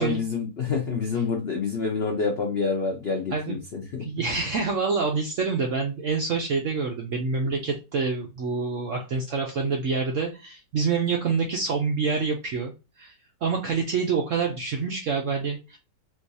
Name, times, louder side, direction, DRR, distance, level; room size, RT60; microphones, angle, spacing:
voice 1, 0.0-4.2, left 5 dB, 70° left, 1 dB, 0.5 m, -27 dB
voice 2, 4.0-12.7 13.0-13.1 13.4-15.8, right 4 dB, 70° right, 2 dB, 0.7 m, -27 dB
3.8 x 2.6 x 2.6 m, 0.28 s
omnidirectional pair, 2.0 m